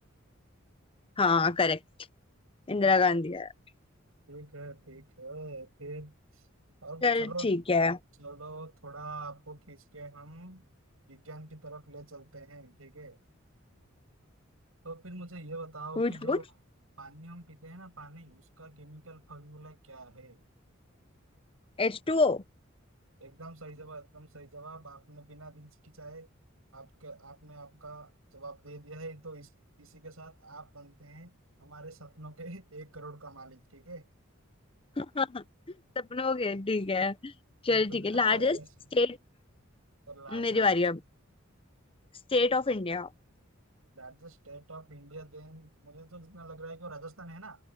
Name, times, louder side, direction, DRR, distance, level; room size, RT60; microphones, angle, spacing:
voice 1, 1.2-1.8 2.7-3.5 7.0-8.0 16.0-16.4 21.8-22.4 35.0-35.4 36.0-37.3 37.6-38.6 38.9-39.2 40.3-41.0 42.3-43.1, left 3 dB, 25° left, 0.7 m, -26 dB
voice 2, 2.8-3.2 4.3-6.1 6.8-7.5 8.2-10.6 11.1-13.2 14.8-16.4 17.0-20.4 23.2-26.3 26.7-29.5 29.8-34.1 37.7-38.7 40.1-40.7 43.9-47.6, right 2 dB, 85° right, 7.8 m, -45 dB
head